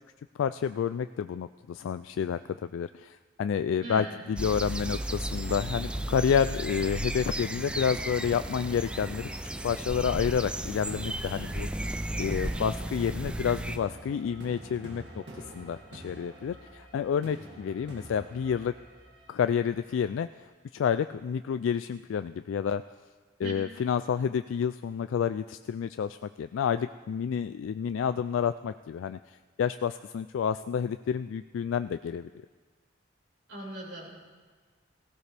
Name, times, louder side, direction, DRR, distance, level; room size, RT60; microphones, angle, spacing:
voice 1, 0.4-9.3 9.6-11.7 12.2-18.7 19.3-20.3 20.7-22.8 23.4-32.3, left 7 dB, 90° left, 11 dB, 0.3 m, -29 dB
voice 2, 3.8-4.2 23.4-23.5 33.5-34.1, right 2 dB, 85° right, -6 dB, 4.9 m, -39 dB
sound 1, 4.4-13.8, right 1 dB, 5° right, 0.3 m, -34 dB
sound 2, 4.8-19.8, right 1 dB, 60° right, 2.2 m, -47 dB
17.5 x 16.0 x 3.4 m, 1.4 s
head